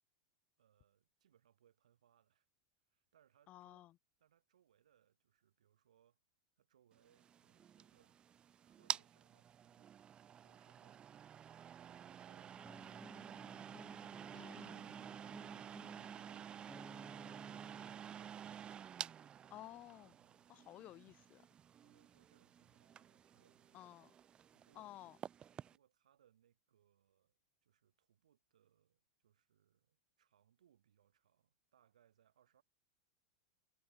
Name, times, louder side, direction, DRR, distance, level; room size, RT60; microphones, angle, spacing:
voice 1, 0.6-2.5 2.9-3.9 4.2-6.2 6.6-8.2 8.6-9.9 10.3-11.1 11.8-13.2 20.0-21.0 21.8-24.0 24.5-25.1 25.7-32.6, right 10 dB, 85° right, 6.9 m, -74 dB
voice 2, 3.5-3.9 14.3-14.9 19.5-20.2 20.5-21.5 23.7-24.1 24.8-25.2, left 15 dB, 40° left, 0.7 m, -54 dB
sound 1, 7.1-25.8, right 9 dB, 25° right, 0.4 m, -50 dB
sound 2, 12.5-18.0, left 1 dB, 5° left, 1.8 m, -58 dB
hypercardioid pair, 110°, 4 cm